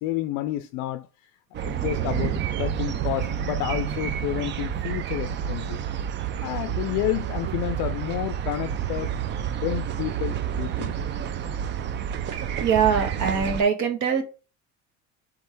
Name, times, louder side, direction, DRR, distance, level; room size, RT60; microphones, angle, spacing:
voice 1, 0.0-5.8 6.4-9.2 9.5-11.0, left 14 dB, 60° left, 0.4 m, -30 dB
sound 1, 1.5-13.6, right 9 dB, 35° right, 0.4 m, -29 dB
voice 2, 12.6-14.2, right 7 dB, 60° right, 1.4 m, -22 dB
3.6 x 3.3 x 4.4 m
supercardioid pair, 120°, 34 cm